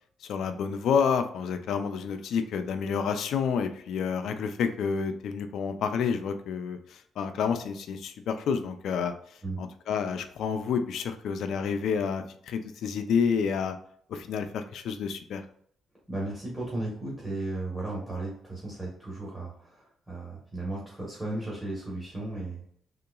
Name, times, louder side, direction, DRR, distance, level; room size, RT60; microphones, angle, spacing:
voice 1, 0.2-9.1 9.6-13.8 14.1-15.4, left 6 dB, 75° left, 8 dB, 0.4 m, -29 dB
voice 2, 16.1-22.6, right 2 dB, 10° right, -5 dB, 1.2 m, -35 dB
3.7 x 2.8 x 2.3 m, 0.63 s
cardioid pair, 90°, 0 cm